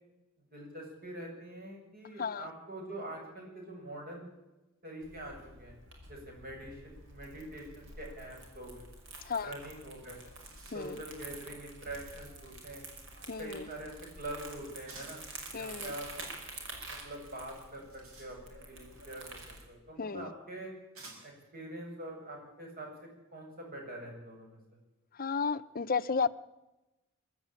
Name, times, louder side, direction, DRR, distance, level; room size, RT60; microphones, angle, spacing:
voice 1, 0.5-4.3 4.8-5.7 6.1-8.8 9.4-10.2 10.7-12.8 13.4-15.2 15.5-16.1 16.8-19.2 19.7-20.7 21.2-22.9 23.3-24.6, right 1 dB, 45° right, 1 dB, 7.9 m, -44 dB
Crumpling crinkling, 5.0-19.6, right 2 dB, 60° right, 5.6 m, -48 dB
sound 1, 10.2-11.1 14.9-15.3 17.6-18.8 19.9-20.0 20.9-21.5, right 3 dB, 80° right, 6.0 m, -53 dB
voice 2, 13.3-13.6 15.5-15.9 20.0-20.3 25.2-26.3, left 5 dB, 45° left, 14 dB, 0.7 m, -33 dB
23.0 x 13.0 x 8.9 m, 1.0 s
head